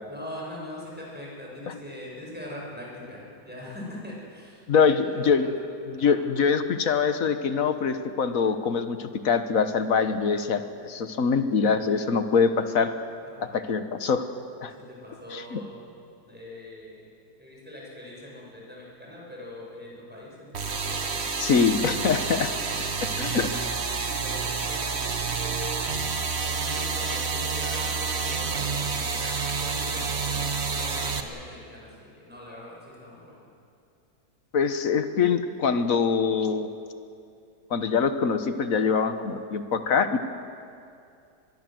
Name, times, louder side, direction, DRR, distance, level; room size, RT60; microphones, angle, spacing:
voice 1, 0.1-6.2 13.2-13.5 14.8-15.8 16.3-17.1 17.4-21.1 22.0-22.4 22.6-22.9 24.0-25.8 26.3-33.5, left 1 dB, 5° right, -4 dB, 7.0 m, -42 dB
voice 2, 4.7-5.5 5.9-12.9 13.4-14.2 14.6-14.7 15.3-15.6 21.4-22.5 23.2-23.6 34.5-36.7 37.7-40.2, left 5 dB, 55° left, 9 dB, 1.5 m, -24 dB
sound 1, 20.5-31.2, right 5 dB, 40° right, 1.5 m, -29 dB
23.0 x 21.5 x 7.8 m, 2.4 s
omnidirectional pair, 1.8 m